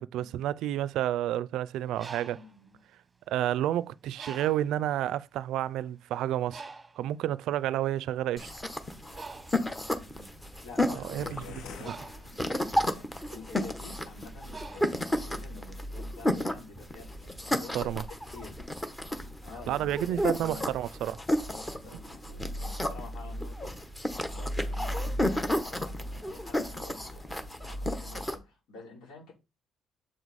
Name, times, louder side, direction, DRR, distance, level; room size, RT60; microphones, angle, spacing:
voice 1, 0.0-2.4 3.3-6.6 7.0-8.5 10.9-12.0 17.7-18.0 19.7-21.2, right 12 dB, 80° right, 0.4 m, -30 dB
Bird, 1.8-3.6 4.2-4.8 5.5-5.7 5.9-15.6, right 4 dB, 15° right, 1.0 m, -48 dB
voice 2, 2.3-2.8 9.7-10.3 10.6-17.9 18.3-18.6 19.4-20.7 21.3-23.8 24.3-27.4 27.6-29.3, left 4 dB, 85° left, 5.4 m, -49 dB
sound 1, 8.4-28.4, left 1 dB, 10° left, 1.0 m, -33 dB
sound 2, 11.2-13.0, left 7 dB, 65° left, 0.8 m, -47 dB
7.5 x 4.8 x 4.1 m
cardioid pair, 145°, 0 cm